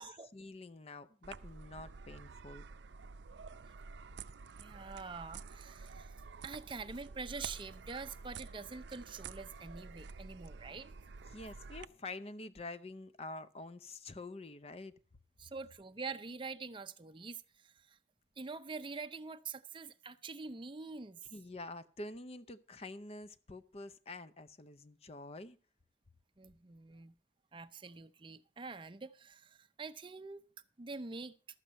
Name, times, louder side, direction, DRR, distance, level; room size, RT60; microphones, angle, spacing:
voice 1, 0.3-2.6 11.3-14.9 21.3-25.6, left 2 dB, 35° left, 0.6 m, -47 dB
sound 1, 1.2-11.9, right 5 dB, 90° right, 0.5 m, -49 dB
voice 2, 4.6-6.2 6.4-10.9 15.4-18.0 18.4-21.2 26.4-27.1 27.5-30.4 30.8-31.3, right 4 dB, 30° right, 0.6 m, -45 dB
12.5 x 7.9 x 5.4 m
head